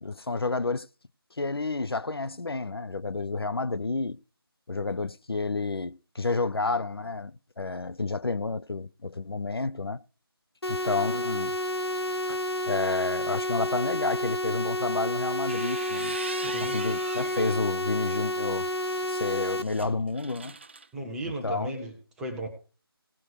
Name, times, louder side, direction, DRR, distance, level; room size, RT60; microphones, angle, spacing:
voice 1, 0.0-0.9 1.4-4.2 4.7-10.0 10.7-11.5 12.3-12.4 12.7-16.2 16.6-18.7 19.1-20.6 21.4-21.7, left 3 dB, 70° left, 0.8 m, -30 dB
sound 1, 10.6-19.6, left 1 dB, 85° left, 1.2 m, -30 dB
sound 2, 15.3-17.6 18.1-20.9, right 4 dB, 25° right, 0.6 m, -41 dB
voice 2, 16.3-16.7 20.9-22.5, right 1 dB, 5° right, 1.1 m, -36 dB
18.0 x 6.1 x 4.9 m
figure-of-eight pair, 165°, 13 cm